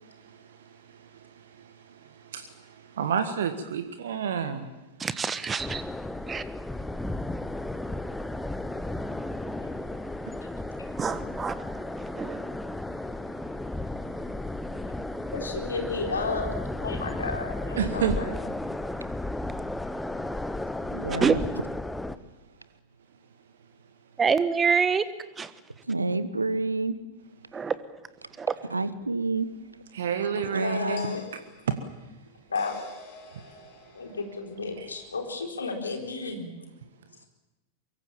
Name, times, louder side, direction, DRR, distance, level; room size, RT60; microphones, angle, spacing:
voice 1, 0.3-0.8 1.1-4.7 17.8-18.2 24.9-25.0 29.9-31.4 31.7-31.8 34.7-35.0, right 7 dB, 60° right, 9 dB, 1.5 m, -31 dB
voice 2, 5.0-5.8 6.3-6.4 11.0-11.8 12.1-12.5 21.1-21.4 24.2-25.0 25.4-25.5 27.5-27.8 28.4-28.6, right 6 dB, 20° right, 14 dB, 1.4 m, -26 dB
sound 1, 5.6-22.2, left 1 dB, 5° left, 1.0 m, -34 dB
voice 3, 15.3-16.5 16.8-18.4 30.3-31.2 32.5-32.8 33.9-36.5, left 4 dB, 75° left, 2 dB, 4.1 m, -32 dB
voice 4, 20.9-21.4 25.9-27.0 28.7-29.5 30.5-31.2, right 3 dB, 80° right, 14 dB, 1.2 m, -28 dB
sound 2, 29.0-29.1 31.0-35.3, left 3 dB, 50° left, 8.0 m, -50 dB
23.5 x 23.0 x 7.3 m, 1.0 s
figure-of-eight pair, 90°, 0 cm